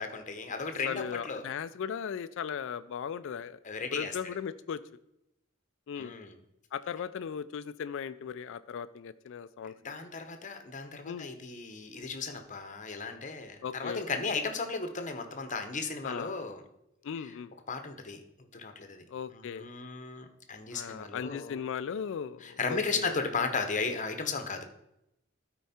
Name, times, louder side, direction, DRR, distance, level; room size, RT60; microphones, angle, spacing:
voice 1, 0.0-1.4 3.6-4.1 6.0-6.4 9.8-16.6 17.2-17.3 17.7-18.2 18.5-19.0 19.3-21.6 22.4-24.6, left 4 dB, 40° left, 7 dB, 0.9 m, -35 dB
voice 2, 0.6-3.6 3.9-4.8 5.9-6.1 6.7-9.9 11.0-11.3 13.6-14.0 16.0-16.3 17.0-17.5 19.1-19.7 20.7-23.2, left 7 dB, 65° left, 12 dB, 0.4 m, -37 dB
12.5 x 4.7 x 4.3 m, 0.83 s
head